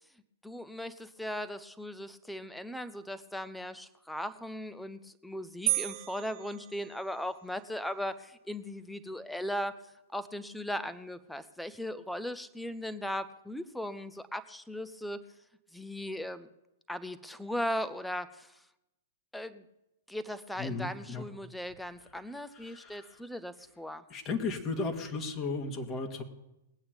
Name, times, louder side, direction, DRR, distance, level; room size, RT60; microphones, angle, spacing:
voice 1, 0.4-9.7 10.1-15.2 15.7-16.5 16.9-18.5 19.3-19.6 20.1-24.0, equal, 5° left, 13 dB, 0.8 m, -38 dB
sound 1, 5.7-7.4, right 17 dB, 45° right, 0.7 m, -34 dB
voice 2, 20.6-21.2 22.5-23.2 24.1-26.2, left 3 dB, 30° left, 4 dB, 2.1 m, -35 dB
20.5 x 8.8 x 5.2 m, 0.92 s
figure-of-eight pair, 110°, 0 cm